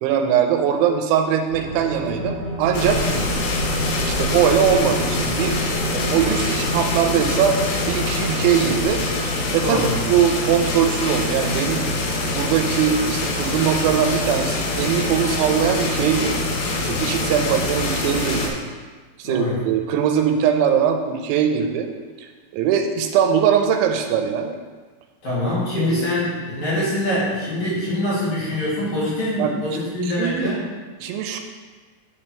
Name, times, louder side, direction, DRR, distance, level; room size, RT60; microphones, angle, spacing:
voice 1, 0.0-3.0 4.0-5.6 5.9-7.6 7.9-11.8 12.3-16.5 16.8-18.6 19.2-21.9 22.2-22.3 22.5-24.5 25.7-26.1 29.4-29.6 30.0-30.5 31.0-31.4, right 8 dB, 85° right, 5 dB, 3.0 m, -21 dB
sound 1, 1.5-8.8, left 1 dB, 65° right, 1.8 m, -30 dB
sound 2, 2.7-18.5, left 2 dB, 75° left, 2.9 m, -24 dB
voice 2, 9.6-9.9 19.2-19.6 25.2-30.6, left 1 dB, 45° left, -10 dB, 3.4 m, -24 dB
10.5 x 4.3 x 4.3 m, 1.4 s
omnidirectional pair, 5.3 m